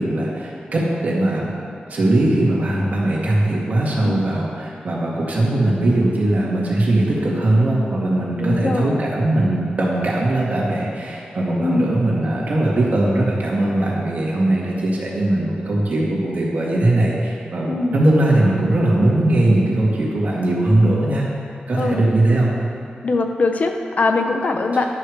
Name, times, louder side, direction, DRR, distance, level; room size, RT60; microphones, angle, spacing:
voice 1, 0.0-1.5 1.9-21.2 21.7-22.5, right 1 dB, 55° right, -4 dB, 2.1 m, -19 dB
voice 2, 8.4-9.0 11.6-11.9 17.6-18.0 21.7-22.1 23.0-24.8, left 3 dB, 50° left, 4 dB, 0.7 m, -21 dB
11.0 x 4.9 x 6.5 m, 2.4 s
wide cardioid pair, 105°, 3 cm